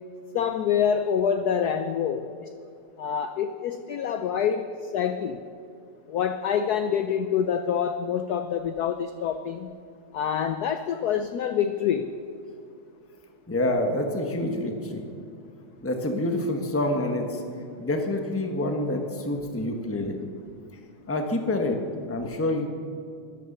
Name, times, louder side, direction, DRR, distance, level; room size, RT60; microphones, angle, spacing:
voice 1, 0.3-2.5 3.0-5.4 6.1-9.7 10.1-12.1, left 8 dB, 75° left, 9 dB, 0.9 m, -26 dB
voice 2, 13.5-15.1 15.8-17.4 17.8-20.2 21.1-21.8 22.1-22.7, left 1 dB, 10° left, 3 dB, 0.9 m, -27 dB
13.0 x 12.0 x 6.7 m, 2.6 s
omnidirectional pair, 2.3 m